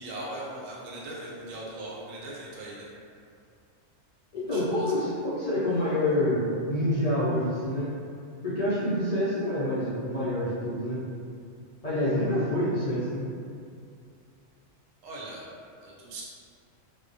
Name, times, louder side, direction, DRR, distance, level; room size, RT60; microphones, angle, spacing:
voice 1, 0.0-2.9 4.5-4.9 15.0-15.4 15.8-16.2, right 1 dB, 75° right, -5 dB, 1.0 m, -39 dB
voice 2, 4.3-7.9 8.4-11.0 11.8-13.2, left 1 dB, 55° left, -12 dB, 0.4 m, -27 dB
2.2 x 2.1 x 2.5 m, 2.3 s
omnidirectional pair, 1.4 m